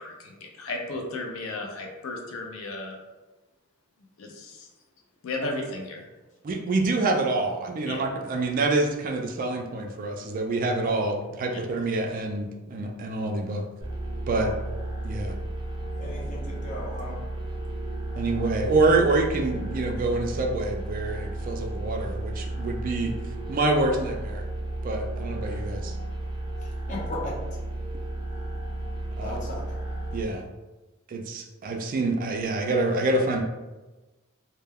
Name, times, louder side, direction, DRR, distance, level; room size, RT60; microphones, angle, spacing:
voice 1, 0.0-3.0 4.2-4.7 5.2-6.1 7.8-8.0 11.5-11.6, left 2 dB, 85° left, 2 dB, 0.5 m, -34 dB
voice 2, 6.4-13.6 14.3-14.5 15.0-15.3 18.2-23.2 23.5-24.4 24.8-25.9 29.2-29.4 30.1-30.4 31.1-33.4, right 2 dB, 40° right, 2 dB, 0.3 m, -26 dB
sound 1, 13.8-30.2, right 1 dB, 25° right, 0.7 m, -33 dB
voice 3, 16.0-17.2 26.9-27.3 29.2-29.6, left 1 dB, 40° left, -5 dB, 0.8 m, -36 dB
2.2 x 2.1 x 3.4 m, 1.1 s
head